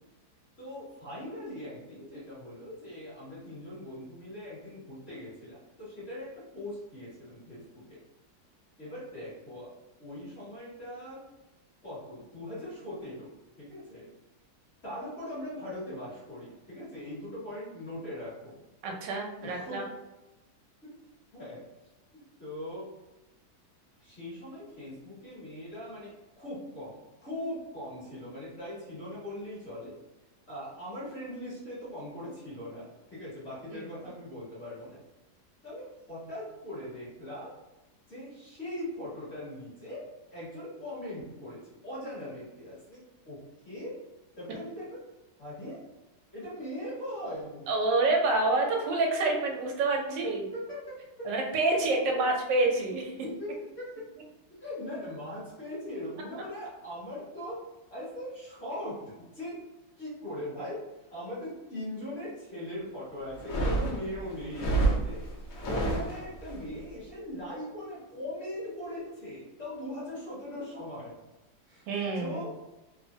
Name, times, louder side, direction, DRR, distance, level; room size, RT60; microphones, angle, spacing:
voice 1, 0.6-8.0 8.8-9.7 10.0-11.2 11.8-13.3 13.6-14.1 14.8-18.6 19.4-19.8 20.8-21.0 21.3-21.6 22.1-22.9 24.0-30.0 30.5-35.0 35.6-37.5 38.1-43.0 43.3-43.4 43.6-44.0 44.4-45.0 45.4-45.8 46.3-47.7 50.2-51.3 51.7-52.3 53.2-54.0 54.5-57.6 57.9-59.6 60.0-60.8 61.1-65.2 65.6-71.1 71.7-71.8 72.1-72.6, left 1 dB, 40° left, -9 dB, 1.4 m, -40 dB
voice 2, 18.8-19.8 33.7-33.8 47.7-50.4 51.2-53.1 71.9-72.4, right 2 dB, 80° right, 1 dB, 1.3 m, -27 dB
sound 1, 63.3-66.6, right 2 dB, 60° left, 1.0 m, -29 dB
3.2 x 2.0 x 2.6 m, 1.0 s
omnidirectional pair, 1.9 m